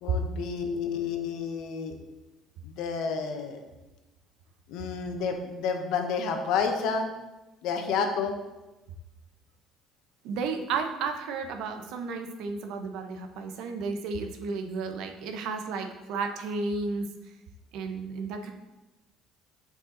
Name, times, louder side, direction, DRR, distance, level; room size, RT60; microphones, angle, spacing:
voice 1, 0.0-1.9 2.6-3.6 4.7-7.1 7.6-8.3, left 5 dB, 75° left, 5 dB, 1.1 m, -30 dB
voice 2, 10.2-17.1 17.7-18.5, right 4 dB, 75° right, 5 dB, 0.9 m, -33 dB
7.5 x 5.4 x 4.0 m, 1.0 s
supercardioid pair, 75°, 0 cm